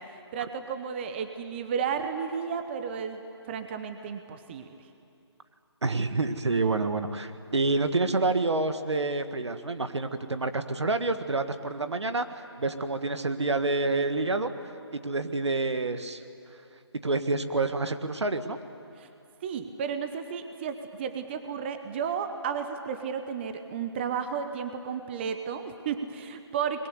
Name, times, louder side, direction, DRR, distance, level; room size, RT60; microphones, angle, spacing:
voice 1, 0.1-4.8 19.0-19.1 19.4-26.9, right 7 dB, 25° right, 8 dB, 1.0 m, -33 dB
voice 2, 5.8-14.5 14.9-16.2 17.0-18.6, right 3 dB, 75° right, 9 dB, 1.7 m, -28 dB
23.5 x 21.5 x 9.6 m, 2.7 s
figure-of-eight pair, 155°, 15 cm